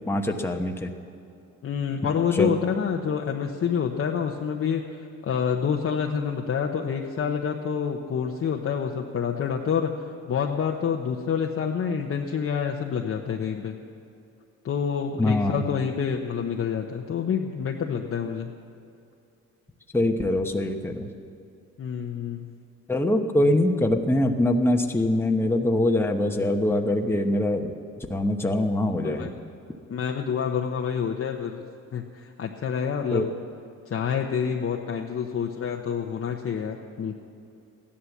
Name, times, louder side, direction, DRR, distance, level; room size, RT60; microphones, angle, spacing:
voice 1, 0.1-0.9 2.4-2.5 15.2-15.5 19.9-21.1 22.9-29.3 33.1-33.3, left 1 dB, 10° left, 3 dB, 1.1 m, -23 dB
voice 2, 1.6-4.8 5.2-9.9 10.3-13.7 14.6-18.5 21.8-22.5 29.0-29.3 29.9-31.6 31.9-33.3 33.9-37.1, left 7 dB, 50° left, 1 dB, 1.0 m, -27 dB
15.5 x 11.5 x 7.3 m, 2.6 s
cardioid pair, 90°, 30 cm